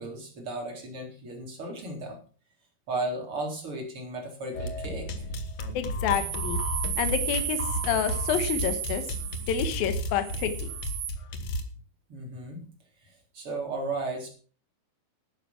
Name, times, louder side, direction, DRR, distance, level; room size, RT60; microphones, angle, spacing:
voice 1, 0.0-2.2 2.9-5.3 12.1-12.6 13.0-14.3, right 2 dB, 35° right, 1 dB, 4.6 m, -35 dB
sound 1, 4.5-11.6, equal, 55° left, 2.2 m, -33 dB
voice 2, 5.7-6.6 7.0-7.6 7.9-9.0 9.5-10.7, left 9 dB, 75° left, 9 dB, 3.1 m, -28 dB
sound 2, 6.1-11.1, right 10 dB, 75° right, 3.0 m, -34 dB
12.0 x 10.0 x 6.0 m, 0.41 s
omnidirectional pair, 4.4 m